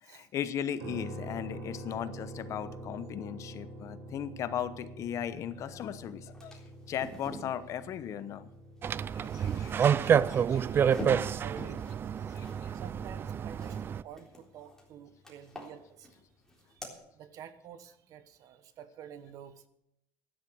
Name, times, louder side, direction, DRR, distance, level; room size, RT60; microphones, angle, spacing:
voice 1, 0.0-8.5 9.1-10.9 12.3-12.7, left 9 dB, 50° left, 14 dB, 0.9 m, -38 dB
sound 1, 0.8-14.8, right 1 dB, 75° right, 5.0 m, -47 dB
sound 2, 5.8-5.9 6.2-7.5 8.9-13.8 14.1-14.9 15.2-16.2 16.5-16.9, equal, 5° left, 3.8 m, -46 dB
sound 3, 8.8-14.0, right 8 dB, 35° right, 0.4 m, -28 dB
voice 2, 11.4-12.1 12.7-16.2 16.7-16.8 17.2-19.7, right 8 dB, 60° right, 12 dB, 1.2 m, -49 dB
12.0 x 10.5 x 6.3 m, 0.80 s
supercardioid pair, 110°, 7 cm